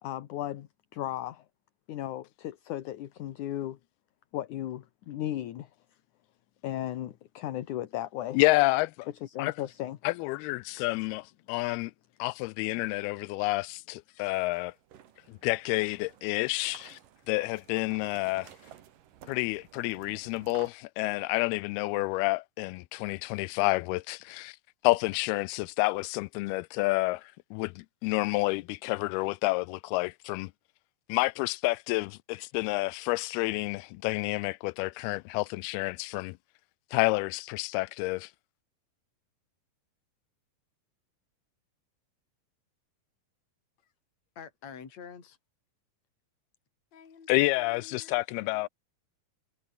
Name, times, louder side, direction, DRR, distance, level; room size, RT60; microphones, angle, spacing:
voice 1, 0.0-1.5 1.9-3.8 4.3-5.7 6.6-8.4 9.1-10.0, left 13 dB, 60° left, 2.4 m, -36 dB
voice 2, 8.3-9.1 9.4-9.5 10.0-11.9 12.2-14.7 15.4-17.0 17.3-18.5 19.3-24.5 24.8-27.2 27.5-30.5 31.1-36.3 36.9-38.3 47.3-48.7, left 22 dB, 85° left, 2.5 m, -29 dB
sound 1, 14.2-20.7, right 10 dB, 65° right, 3.4 m, -54 dB
voice 3, 44.4-45.4 46.9-47.3 47.6-48.7, left 7 dB, 45° left, 4.8 m, -48 dB
omnidirectional pair, 4.4 m